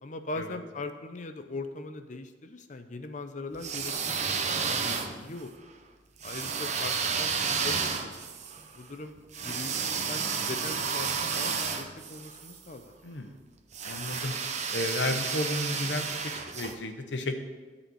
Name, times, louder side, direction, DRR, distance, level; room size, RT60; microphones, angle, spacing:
voice 1, 0.0-4.4 4.7-5.5 6.2-8.3 8.8-9.1 9.4-12.9, left 2 dB, 40° left, 8 dB, 0.6 m, -40 dB
sound 1, 3.5-5.4 6.2-12.6 13.7-16.7, right 5 dB, 40° right, 0.7 m, -31 dB
voice 2, 4.8-5.3 13.0-13.3 13.8-14.3 14.7-17.4, left 2 dB, 70° left, 6 dB, 0.9 m, -33 dB
11.0 x 4.3 x 7.8 m, 1.4 s
head